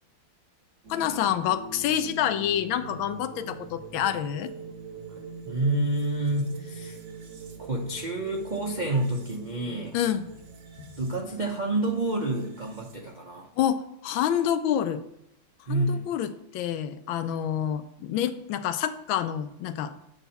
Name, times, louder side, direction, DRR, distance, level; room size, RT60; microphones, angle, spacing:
sound 1, 0.8-13.1, right 4 dB, 60° right, 1.6 m, -43 dB
voice 1, 0.9-4.5 9.9-10.2 13.6-15.0 15.7-19.9, left 10 dB, 80° left, 11 dB, 1.3 m, -27 dB
voice 2, 5.5-7.0 7.6-10.0 11.0-13.5 15.7-16.1, right 2 dB, 80° right, 0 dB, 0.4 m, -28 dB
8.2 x 4.1 x 5.7 m, 0.81 s
omnidirectional pair, 2.2 m